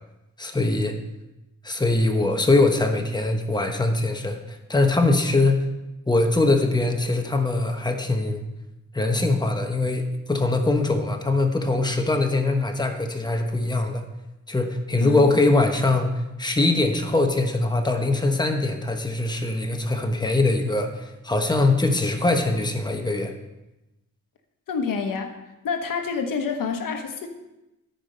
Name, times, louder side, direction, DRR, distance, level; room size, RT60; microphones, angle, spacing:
voice 1, 0.4-0.9 1.6-5.6 6.1-8.4 8.9-14.0 14.5-23.3, left 2 dB, 15° left, 4 dB, 1.1 m, -22 dB
voice 2, 24.7-25.4 25.6-27.3, left 5 dB, 80° left, 6 dB, 1.1 m, -27 dB
13.5 x 5.0 x 5.5 m, 0.97 s
cardioid pair, 85°, 32 cm